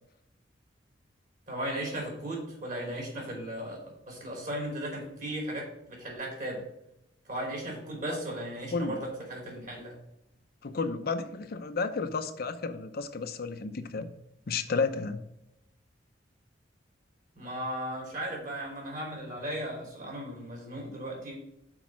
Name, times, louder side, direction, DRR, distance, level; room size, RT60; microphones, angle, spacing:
voice 1, 1.5-6.6 7.2-10.0 17.3-21.4, right 1 dB, 45° right, -1 dB, 3.3 m, -36 dB
voice 2, 10.6-14.1 14.5-15.2, left 4 dB, 55° left, 9 dB, 0.6 m, -32 dB
6.1 x 4.7 x 6.2 m, 0.82 s
head